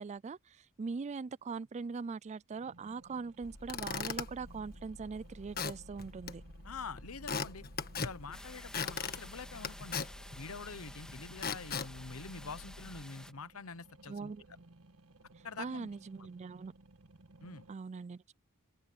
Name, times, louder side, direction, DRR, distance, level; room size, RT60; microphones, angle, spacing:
voice 1, 0.0-6.4 14.1-14.4 15.6-16.7 17.7-18.2, right 4 dB, 30° right, 0.3 m, -41 dB
sound 1, 2.5-17.7, right 2 dB, 85° right, 1.6 m, -59 dB
Squeak / Wood, 3.4-13.0, left 5 dB, 45° left, 1.5 m, -41 dB
voice 2, 6.6-7.7 7.9-10.1 10.3-14.3 15.4-15.9 16.2-16.3 17.4-17.6, left 4 dB, 75° left, 1.0 m, -46 dB
sound 2, 8.3-13.3, left 1 dB, 5° left, 1.8 m, -52 dB
open air
head